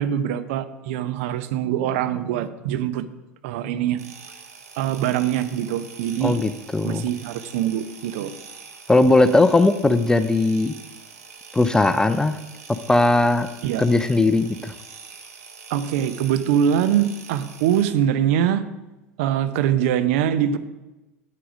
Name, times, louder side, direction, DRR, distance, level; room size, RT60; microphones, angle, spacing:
voice 1, 0.0-3.1 3.4-4.0 4.8-6.4 6.8-8.3 13.6-13.8 15.7-18.7 19.2-20.6, right 10 dB, 60° right, 12 dB, 0.8 m, -23 dB
sound 1, 4.0-17.8, right 5 dB, 75° right, 1.8 m, -44 dB
voice 2, 6.2-7.0 8.9-10.7 11.5-12.4 12.9-13.5 13.8-14.7, left 2 dB, 10° left, 11 dB, 0.6 m, -18 dB
9.5 x 8.5 x 5.2 m, 1.1 s
figure-of-eight pair, 85°, 8 cm